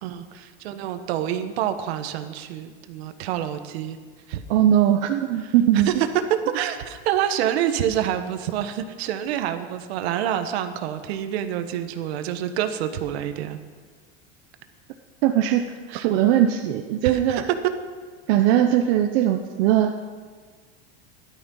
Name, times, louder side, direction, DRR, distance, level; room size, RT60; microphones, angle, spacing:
voice 1, 0.0-4.0 4.3-4.4 5.4-6.1 6.5-13.6 15.9-16.1 17.3-17.4, right 10 dB, 75° right, 8 dB, 1.3 m, -27 dB
voice 2, 4.5-5.9 15.2-15.7 16.0-17.4 18.3-19.9, right 11 dB, 60° right, 4 dB, 0.9 m, -20 dB
14.0 x 12.0 x 5.6 m, 1.5 s
supercardioid pair, 140°, 31 cm